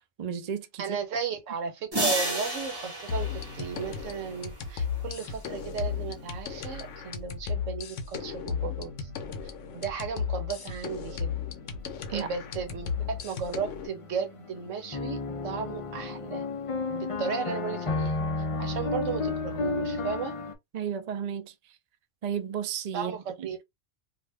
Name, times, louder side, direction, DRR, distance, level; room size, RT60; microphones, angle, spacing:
voice 1, 0.2-1.0 12.1-12.3 20.7-21.5 22.2-23.5, right 8 dB, 65° right, 0.4 m, -33 dB
voice 2, 0.8-9.1 9.7-11.3 12.1-15.2 15.4-16.5 16.9-18.2 18.6-20.3 22.9-23.6, right 6 dB, 85° right, 1.2 m, -35 dB
sound 1, 1.9-4.7, right 1 dB, 20° right, 0.9 m, -32 dB
sound 2, 3.1-13.9, left 6 dB, 80° left, 1.0 m, -35 dB
sound 3, 6.2-6.3 8.7-20.5, left 3 dB, 50° left, 0.4 m, -34 dB
2.5 x 2.2 x 3.3 m
omnidirectional pair, 1.3 m